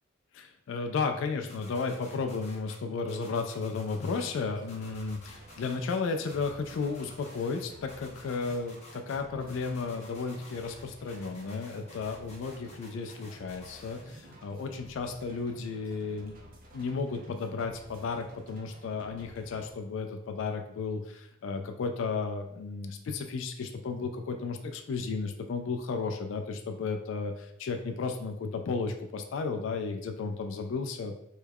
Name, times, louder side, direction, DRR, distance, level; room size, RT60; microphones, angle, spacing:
voice 1, 0.3-16.4 16.7-31.2, left 4 dB, 75° left, 5 dB, 0.3 m, -34 dB
sound 1, 1.5-2.8 3.1-4.4 4.7-6.0 6.3-7.6 7.9-9.2 9.5-10.8 11.1-14.0, left 2 dB, 35° left, 0.7 m, -52 dB
sound 2, 4.2-19.7, right 1 dB, 45° right, 0.5 m, -53 dB
3.2 x 2.3 x 3.4 m, 0.76 s
head